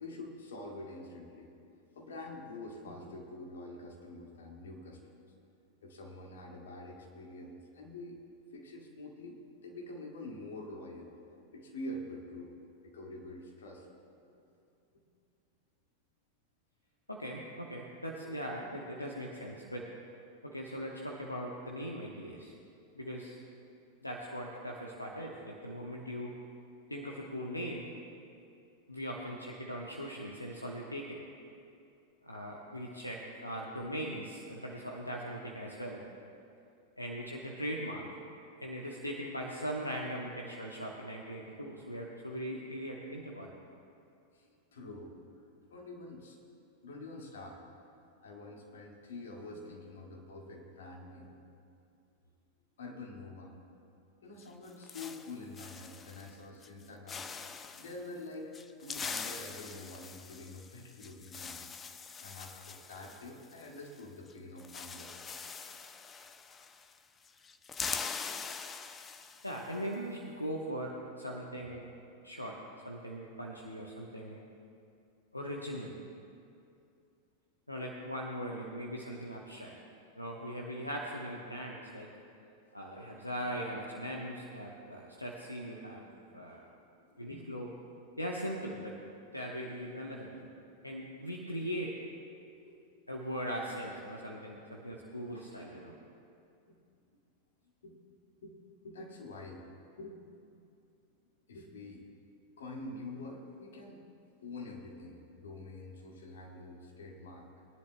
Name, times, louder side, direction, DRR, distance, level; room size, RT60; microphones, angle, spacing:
voice 1, 0.0-1.5 1.9-5.3 5.8-8.2 8.5-11.1 11.5-12.5 12.8-13.9 18.5-18.8 44.3-46.4 46.8-47.7 48.1-51.4 52.8-53.6 54.2-58.5 58.8-61.6 62.2-65.3 86.3-86.4 87.1-87.4 92.7-93.1 96.7-96.8 97.8-98.0 98.4-98.6 98.8-99.7 100.0-100.2 101.5-102.0 102.6-104.1 104.4-107.5, left 2 dB, 65° left, -1 dB, 1.9 m, -46 dB
voice 2, 17.1-19.9 20.4-22.5 22.9-23.4 24.0-26.3 26.9-27.9 28.9-31.2 32.2-36.0 37.0-38.0 38.6-43.5 69.4-71.9 72.2-72.6 72.8-74.4 75.3-75.9 77.7-79.7 80.1-82.1 82.7-86.1 86.3-86.7 87.2-87.7 88.2-89.0 89.3-90.4 90.8-91.9 93.1-95.9, equal, 85° left, -2 dB, 1.0 m, -40 dB
sound 1, 54.4-56.3 56.6-56.8 57.1-58.0 58.5-64.0 64.3-64.4 64.6-67.0 67.2-69.7, left 5 dB, 20° left, 0.6 m, -43 dB
22.0 x 10.5 x 2.2 m, 2.6 s
figure-of-eight pair, 90°, 0 cm